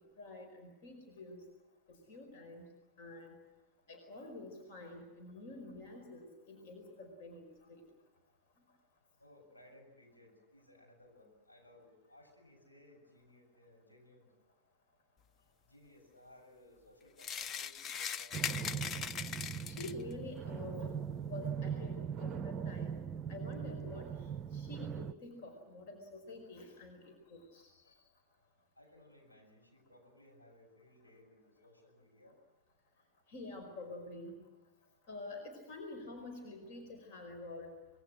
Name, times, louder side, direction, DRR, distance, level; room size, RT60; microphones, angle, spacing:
voice 1, 0.2-1.4 2.1-2.6 3.0-3.3 3.9-7.8 19.7-20.9 21.2-22.9 23.3-24.1 24.5-27.7 33.3-34.3 35.1-37.7, left 2 dB, 50° left, 5 dB, 4.9 m, -48 dB
voice 2, 9.2-14.3 15.6-18.4 27.8-28.0 28.8-32.4, left 1 dB, 80° left, 1 dB, 7.6 m, -61 dB
sound 1, 17.2-20.1, left 7 dB, 25° left, 0.7 m, -40 dB
sound 2, 18.3-25.1, right 7 dB, 25° right, 0.7 m, -40 dB
26.0 x 22.0 x 7.7 m, 1.1 s
figure-of-eight pair, 90°, 0 cm